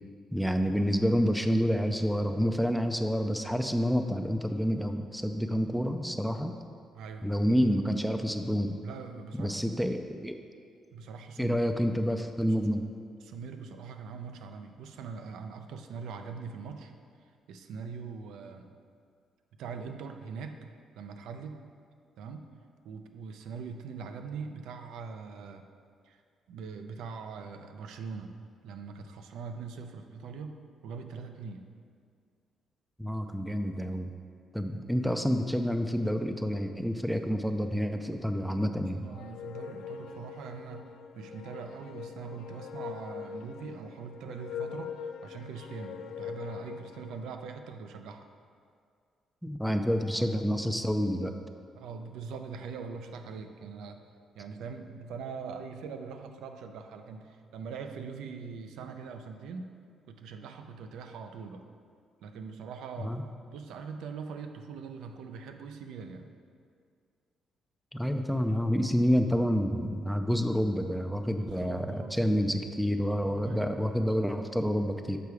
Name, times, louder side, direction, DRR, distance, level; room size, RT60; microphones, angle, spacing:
voice 1, 0.3-6.5 7.2-8.8 9.4-10.4 11.4-12.9 33.0-34.1 34.5-39.1 49.4-51.3 63.0-63.3 67.9-75.2, equal, ahead, 6 dB, 0.4 m, -28 dB
voice 2, 6.9-7.3 8.8-9.8 10.9-11.5 13.2-16.9 17.5-18.7 19.6-20.6 21.0-21.6 22.2-22.5 22.8-25.6 26.0-26.2 26.5-28.3 28.6-30.5 30.8-31.7 38.9-48.3 49.7-49.8 50.1-50.3 51.7-54.0 54.3-59.7 60.1-61.7 62.2-63.2 63.5-66.3 71.4-72.2 73.4-73.7, right 5 dB, 85° right, 6 dB, 0.5 m, -42 dB
sound 1, 39.1-47.3, left 7 dB, 85° left, 0.4 m, -42 dB
6.8 x 4.6 x 4.8 m, 2.2 s
cardioid pair, 90°, 0 cm